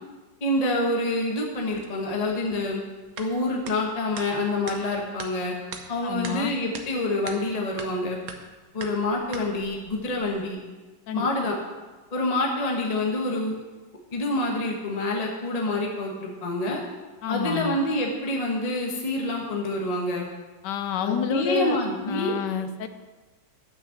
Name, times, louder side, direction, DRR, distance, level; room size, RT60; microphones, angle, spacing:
voice 1, 0.4-2.8 3.2-5.5 5.9-8.2 8.7-10.6 11.1-11.6 12.1-13.5 14.1-16.8 17.3-20.2 21.0-22.3, left 2 dB, 25° left, -1 dB, 1.0 m, -27 dB
sound 1, 1.5-10.5, right 5 dB, 60° right, 1.2 m, -43 dB
voice 2, 6.0-6.5 11.1-11.3 17.2-17.8 20.6-21.8 22.1-22.9, left 7 dB, 75° left, 9 dB, 1.3 m, -29 dB
9.0 x 6.3 x 6.4 m, 1.3 s
omnidirectional pair, 2.0 m